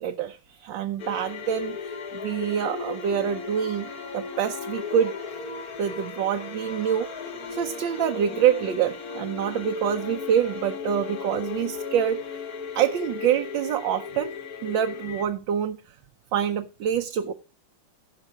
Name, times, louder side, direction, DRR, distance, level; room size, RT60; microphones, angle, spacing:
voice 1, 0.0-5.1 5.8-12.4 12.7-14.3 14.6-15.8 16.3-17.3, right 9 dB, 70° right, 1.4 m, -26 dB
sound 1, 1.0-15.2, left 5 dB, 50° left, 1.6 m, -36 dB
16.5 x 5.7 x 4.9 m
omnidirectional pair, 2.2 m